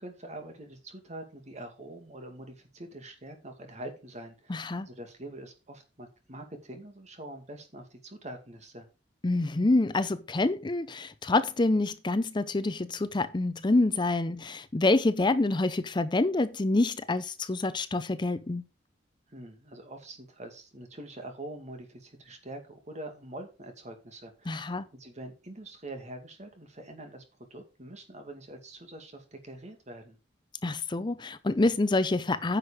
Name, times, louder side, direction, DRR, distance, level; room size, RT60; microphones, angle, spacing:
voice 1, 0.0-8.9 19.3-30.2, right 1 dB, 40° right, 2.3 m, -44 dB
voice 2, 4.5-4.9 9.2-18.6 24.5-24.9 30.6-32.6, left 2 dB, 25° left, 0.5 m, -27 dB
10.0 x 6.4 x 5.0 m
head